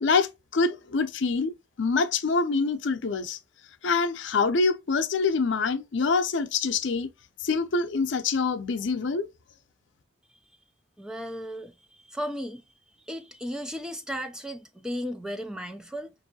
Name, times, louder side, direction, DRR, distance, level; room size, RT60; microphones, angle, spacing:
voice 1, 0.0-1.5 1.8-3.4 3.8-7.1 7.4-9.3, left 4 dB, 70° left, 0.6 m, -25 dB
voice 2, 11.0-12.6 13.1-16.1, equal, 5° right, 0.3 m, -35 dB
5.3 x 2.7 x 2.7 m
head